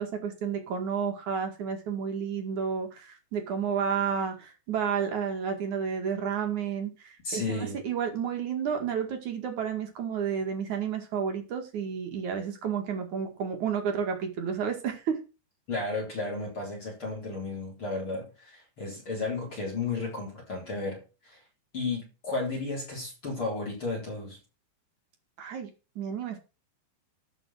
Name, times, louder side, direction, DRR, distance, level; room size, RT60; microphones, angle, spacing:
voice 1, 0.0-15.2 25.4-25.7 26.0-26.4, right 7 dB, 50° right, 2.7 m, -31 dB
voice 2, 7.2-7.8 15.7-21.4 21.7-24.4, left 3 dB, 30° left, 4.2 m, -33 dB
13.0 x 6.1 x 6.2 m
omnidirectional pair, 5.2 m